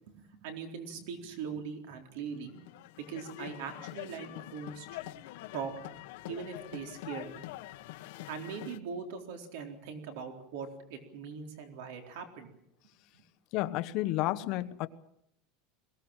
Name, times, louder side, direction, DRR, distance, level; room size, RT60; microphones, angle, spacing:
voice 1, 0.4-2.6 3.0-4.9 5.5-5.7 6.3-7.4 8.3-12.5, right 6 dB, 65° right, 4.0 m, -41 dB
sound 1, 2.5-8.8, left 16 dB, 65° left, 1.2 m, -45 dB
voice 2, 13.5-14.9, left 16 dB, 45° left, 1.1 m, -31 dB
22.0 x 17.5 x 8.9 m
supercardioid pair, 170°, 0 cm